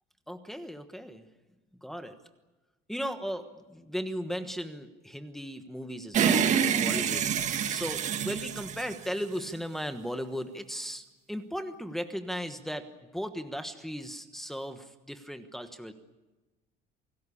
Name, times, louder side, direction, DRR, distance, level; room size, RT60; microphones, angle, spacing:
voice 1, 0.3-1.3 1.8-2.2 2.9-7.3 7.7-12.9 13.1-15.9, equal, ahead, 8 dB, 1.3 m, -37 dB
sound 1, 6.1-9.6, right 8 dB, 40° right, 1.7 m, -27 dB
27.5 x 19.0 x 8.6 m, 1.1 s
cardioid pair, 175°, 20 cm